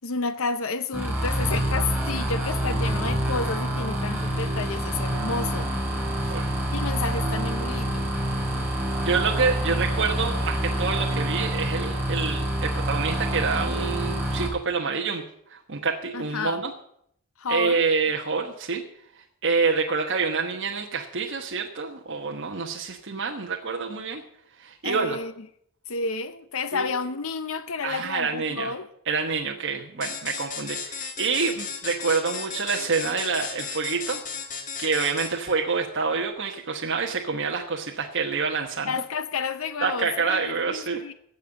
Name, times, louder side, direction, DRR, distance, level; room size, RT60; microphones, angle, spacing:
voice 1, 0.0-5.7 6.2-6.4 6.7-8.1 16.1-16.6 17.4-17.9 24.8-25.3 25.9-28.9 38.9-41.1, left 4 dB, 70° left, 0.7 m, -31 dB
sound 1, 0.9-14.5, right 1 dB, 10° right, 3.9 m, -27 dB
voice 2, 9.0-15.2 15.5-16.7 17.5-18.8 19.2-24.2 24.6-25.2 26.7-26.9 27.8-28.7 29.1-34.2 34.8-38.9 39.8-41.0, right 5 dB, 55° right, 1.2 m, -27 dB
sound 2, 30.0-35.6, left 6 dB, 35° left, 1.6 m, -35 dB
16.0 x 5.4 x 9.6 m
head